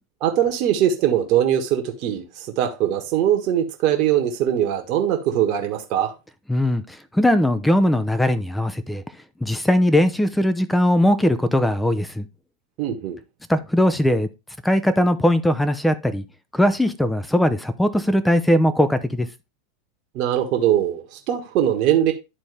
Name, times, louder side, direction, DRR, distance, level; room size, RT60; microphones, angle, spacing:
voice 1, 0.2-6.1 12.8-13.2 20.1-22.1, right 10 dB, 50° right, 1.4 m, -21 dB
voice 2, 6.5-6.8 7.1-9.0 9.4-12.3 13.5-14.3 14.6-16.2 16.5-19.3, left 1 dB, 5° left, 0.8 m, -19 dB
11.0 x 4.1 x 3.4 m
hypercardioid pair, 90°, 0 cm